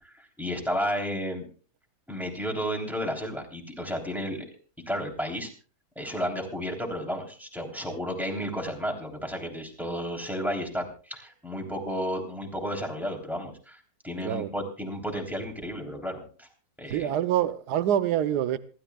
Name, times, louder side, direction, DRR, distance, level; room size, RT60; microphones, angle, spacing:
voice 1, 0.0-1.5 2.1-4.5 4.9-5.5 6.0-16.5 16.8-17.1, equal, ahead, 3.3 m, -32 dB
voice 2, 16.9-18.6, right 10 dB, 85° right, 1.3 m, -25 dB
26.5 x 13.0 x 2.3 m
omnidirectional pair, 1.7 m